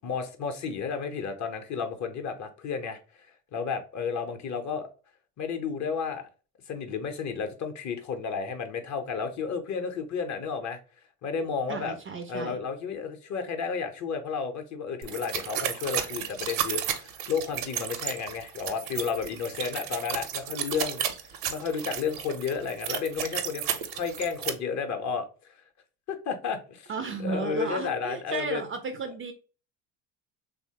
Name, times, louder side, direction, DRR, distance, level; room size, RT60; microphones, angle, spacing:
voice 1, 0.0-3.0 3.5-4.9 5.4-6.3 6.7-10.8 11.2-12.0 12.3-25.5 26.1-26.9 27.2-28.6, left 6 dB, 40° left, 0.6 m, -32 dB
voice 2, 11.7-12.6 26.9-29.3, right 4 dB, 30° right, 0.4 m, -34 dB
sound 1, 15.0-24.5, right 9 dB, 65° right, 0.6 m, -33 dB
3.0 x 2.0 x 2.8 m
hypercardioid pair, 70°, 47 cm